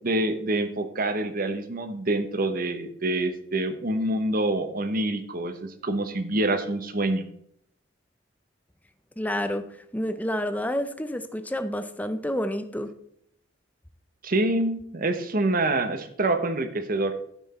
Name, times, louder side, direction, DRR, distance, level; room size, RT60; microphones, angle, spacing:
voice 1, 0.0-7.2 14.2-17.2, right 2 dB, 50° right, 9 dB, 1.0 m, -26 dB
voice 2, 9.2-9.6 9.9-12.9, equal, 10° left, 9 dB, 0.7 m, -29 dB
12.0 x 5.9 x 4.3 m, 0.70 s
head